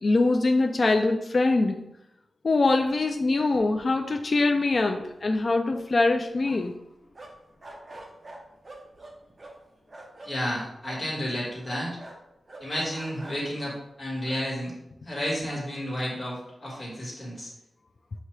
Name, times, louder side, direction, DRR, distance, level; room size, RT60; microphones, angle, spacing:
voice 1, 0.0-1.8 2.4-6.7, left 3 dB, 45° left, 3 dB, 0.3 m, -23 dB
sound 1, 3.3-3.4 3.5-4.2 4.5-4.6 4.9-6.8 7.1-10.3 10.9-11.1 11.6-13.6 14.2-14.4, right 2 dB, 30° right, 0.7 m, -46 dB
voice 2, 10.2-12.0 12.6-14.7 15.0-17.5, equal, 25° left, -5 dB, 1.7 m, -31 dB
5.9 x 2.7 x 3.2 m, 0.85 s
wide cardioid pair, 140°, 0 cm